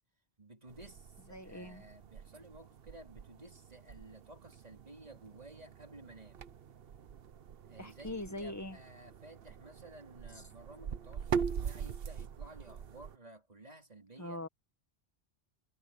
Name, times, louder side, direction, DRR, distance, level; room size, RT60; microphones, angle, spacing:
voice 1, 0.4-6.4 7.7-14.4, right 2 dB, 40° right, 3.4 m, -54 dB
sound 1, 0.7-13.2, right 7 dB, 65° right, 1.0 m, -43 dB
voice 2, 1.3-1.8 7.8-8.8 10.4-10.5 14.2-14.5, left 1 dB, 15° left, 1.4 m, -42 dB
omnidirectional pair, 1.1 m